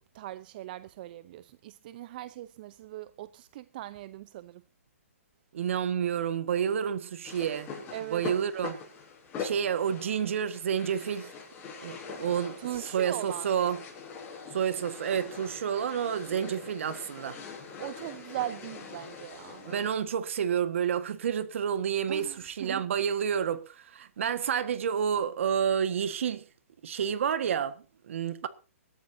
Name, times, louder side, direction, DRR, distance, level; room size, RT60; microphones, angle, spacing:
voice 1, 0.0-4.6 7.9-8.2 12.6-13.7 17.8-19.7 22.1-22.8 28.4-28.5, right 14 dB, 40° right, 0.7 m, -40 dB
voice 2, 5.5-7.7 8.1-8.8 9.4-11.3 11.8-12.6 12.9-13.8 14.5-17.4 19.6-26.5 26.8-28.5, right 8 dB, 60° right, 1.7 m, -29 dB
sound 1, 7.2-20.1, left 5 dB, 20° left, 6.9 m, -43 dB
24.0 x 13.0 x 2.8 m
hypercardioid pair, 150°, 8 cm